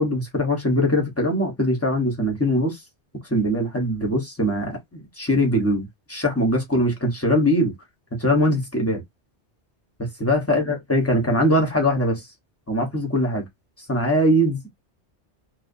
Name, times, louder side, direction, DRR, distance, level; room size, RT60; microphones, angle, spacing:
voice 1, 0.0-2.8 3.3-7.7 8.2-9.0 10.2-12.2 12.7-13.4 13.9-14.7, equal, 15° left, 0.8 m, -21 dB
2.6 x 2.1 x 2.5 m
omnidirectional pair, 1.2 m